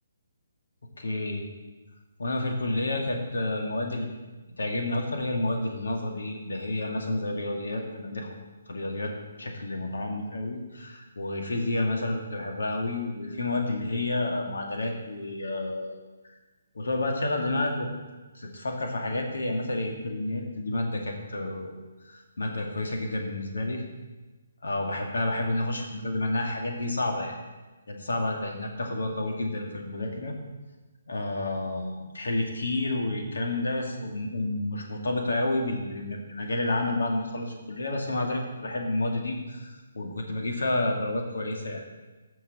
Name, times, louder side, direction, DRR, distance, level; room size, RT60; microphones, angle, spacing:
voice 1, 1.0-1.5 2.2-4.1 4.6-8.4 8.7-16.0 16.7-17.9 18.3-21.7 22.0-23.8 24.6-27.4 27.9-30.4 31.1-41.8, left 2 dB, 85° left, 2 dB, 2.0 m, -30 dB
15.5 x 6.1 x 4.1 m, 1.2 s
hypercardioid pair, 155°, 0 cm